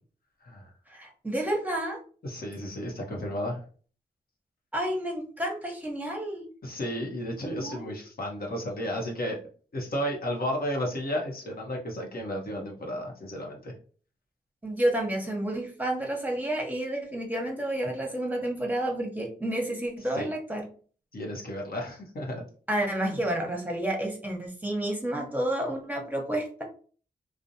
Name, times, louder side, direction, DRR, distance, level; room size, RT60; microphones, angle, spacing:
voice 1, 0.9-2.0 4.7-6.5 7.4-8.0 14.6-20.6 22.7-26.6, right 1 dB, 10° right, 1 dB, 1.0 m, -30 dB
voice 2, 2.2-3.6 6.6-9.4 9.7-13.7 20.2-20.3 21.1-22.4 23.0-23.2, equal, 60° left, 0 dB, 0.8 m, -33 dB
2.5 x 2.1 x 2.7 m, 0.41 s
cardioid pair, 40°, 18 cm